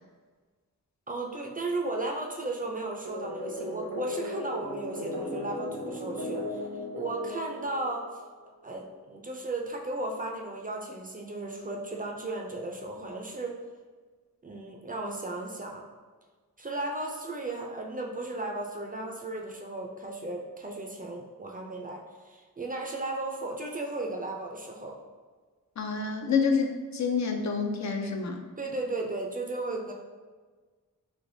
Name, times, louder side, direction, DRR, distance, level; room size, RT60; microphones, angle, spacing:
voice 1, 1.1-6.6 6.9-8.2 8.6-13.5 14.4-15.8 16.6-25.0 28.6-29.9, right 2 dB, 25° right, 0 dB, 0.4 m, -35 dB
sound 1, 3.0-8.2, left 1 dB, 90° right, 0.8 m, -36 dB
voice 2, 25.8-28.4, left 5 dB, 55° left, 3 dB, 0.4 m, -28 dB
3.3 x 3.1 x 2.6 m, 1.4 s
wide cardioid pair, 125°, 33 cm